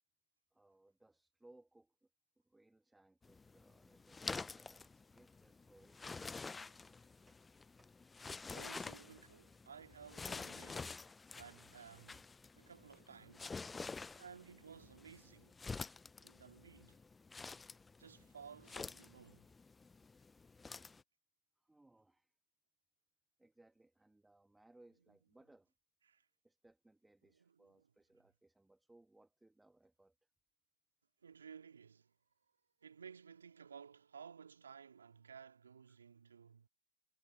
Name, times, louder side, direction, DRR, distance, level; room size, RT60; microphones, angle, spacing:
voice 1, 0.5-2.1 2.4-6.8 7.3-7.4 7.8-8.4 12.5-12.6 17.6-18.1 19.0-19.1 21.6-22.3 23.4-25.7 26.4-30.1 35.9-36.0, right 2 dB, 5° right, 1.4 m, -68 dB
sound 1, 3.2-21.0, left 4 dB, 10° left, 0.4 m, -49 dB
voice 2, 8.5-12.3 12.6-13.5 14.2-15.6 16.2-17.0 18.0-19.5 26.1-26.3 27.2-27.9 31.2-32.1 32.8-36.7, right 6 dB, 80° right, 2.0 m, -57 dB
hypercardioid pair, 100°, 0 cm